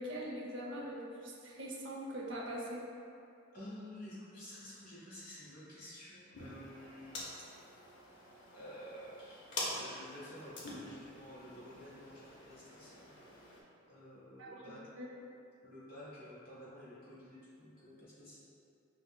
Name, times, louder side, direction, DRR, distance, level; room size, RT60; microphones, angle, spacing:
voice 1, 0.0-2.8 14.4-15.3, equal, 70° right, -4 dB, 0.6 m, -42 dB
voice 2, 3.5-7.2 8.5-13.1 13.9-14.8 15.6-18.4, equal, 45° left, -9 dB, 1.1 m, -51 dB
sound 1, 6.3-13.6, left 1 dB, 65° left, 0.6 m, -46 dB
5.4 x 2.0 x 2.2 m, 2.6 s
head